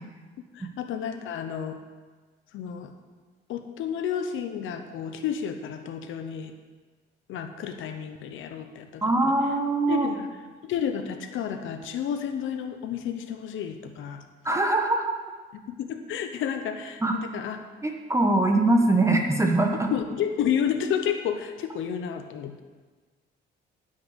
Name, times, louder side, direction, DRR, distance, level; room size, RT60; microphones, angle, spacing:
voice 1, 0.5-1.8 2.5-2.9 3.5-6.5 7.3-9.3 9.9-14.2 15.5-17.6 19.9-22.6, left 8 dB, 85° left, 7 dB, 1.0 m, -31 dB
voice 2, 9.0-10.1 14.4-15.1 17.0-17.1 17.8-19.9, right 2 dB, 15° right, 2 dB, 1.1 m, -22 dB
9.7 x 5.8 x 8.1 m, 1.4 s
cardioid pair, 90°, 20 cm